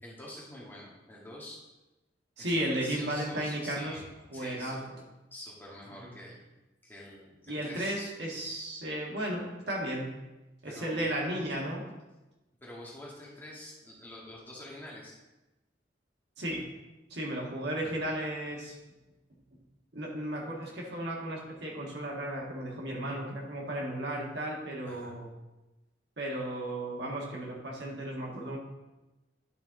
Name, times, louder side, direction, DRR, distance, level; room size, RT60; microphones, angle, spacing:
voice 1, 0.0-1.6 2.4-2.5 2.8-4.8 5.3-6.4 6.8-8.0 10.6-11.0 12.6-15.2 24.8-25.1, left 1 dB, 10° left, -5 dB, 1.6 m, -46 dB
voice 2, 2.4-4.0 4.3-5.0 6.0-6.1 7.5-10.1 10.6-11.9 16.4-16.6 17.1-18.8 19.9-25.3 26.2-28.6, right 1 dB, 65° right, -2 dB, 1.6 m, -34 dB
11.0 x 4.3 x 3.7 m, 1.1 s
head